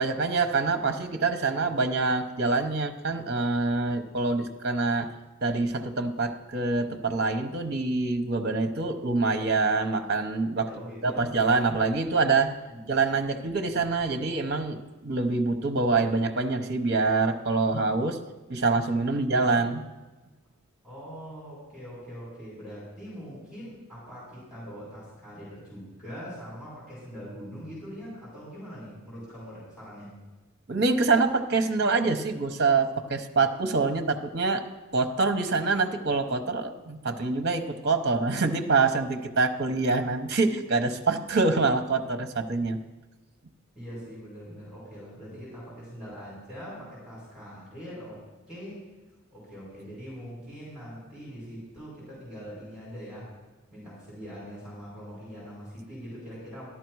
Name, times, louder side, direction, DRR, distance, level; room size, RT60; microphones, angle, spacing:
voice 1, 0.0-5.1 5.4-10.7 11.0-12.5 12.9-18.2 18.5-19.8 30.7-34.6 34.9-42.8, right 3 dB, 50° right, 6 dB, 0.8 m, -25 dB
voice 2, 3.8-4.4 10.6-11.2 12.7-12.9 20.8-30.1 43.7-48.2 48.5-48.8 49.3-53.3 53.7-56.7, equal, 5° right, -8 dB, 4.9 m, -42 dB
13.0 x 11.5 x 4.7 m, 1.2 s
head